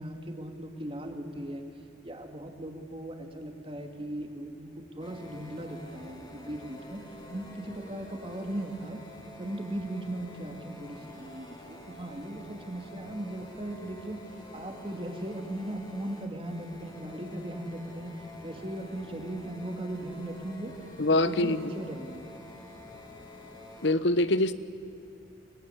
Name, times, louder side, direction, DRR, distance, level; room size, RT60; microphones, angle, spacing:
voice 1, 0.0-1.6 2.0-7.0 7.3-9.0 9.4-14.2 14.5-18.1 18.4-20.7 21.1-22.3, right 1 dB, 30° right, 4 dB, 2.5 m, -38 dB
sound 1, 5.0-23.9, left 1 dB, 25° left, 3.2 m, -48 dB
voice 2, 21.0-21.6 23.8-24.5, left 2 dB, 65° left, 14 dB, 1.1 m, -24 dB
23.0 x 22.0 x 9.9 m, 2.7 s
head